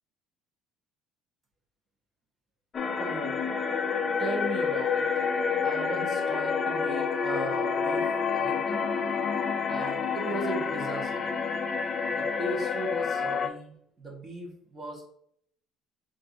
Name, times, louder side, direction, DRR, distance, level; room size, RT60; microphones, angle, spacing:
sound 1, 2.7-13.5, left 5 dB, 25° left, 0.4 m, -28 dB
voice 1, 3.0-3.7 4.2-5.3 5.6-8.9 9.5-11.3 12.1-15.0, right 2 dB, 20° right, -1 dB, 1.0 m, -37 dB
6.4 x 2.6 x 2.7 m, 0.67 s
cardioid pair, 165°, 0 cm